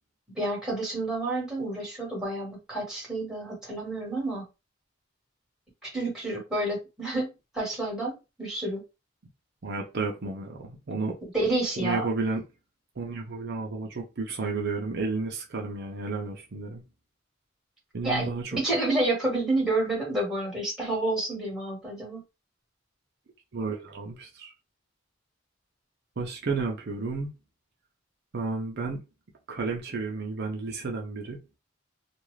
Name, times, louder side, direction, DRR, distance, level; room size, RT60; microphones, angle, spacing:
voice 1, 0.3-4.4 5.8-8.8 11.3-12.0 18.0-22.2, right 2 dB, 5° right, 1.4 m, -29 dB
voice 2, 9.6-11.2 11.8-12.4 13.0-16.8 17.9-18.6 23.5-24.5 26.2-27.3 28.3-29.0 29.5-31.4, right 4 dB, 55° right, 0.6 m, -32 dB
2.4 x 2.3 x 3.1 m
head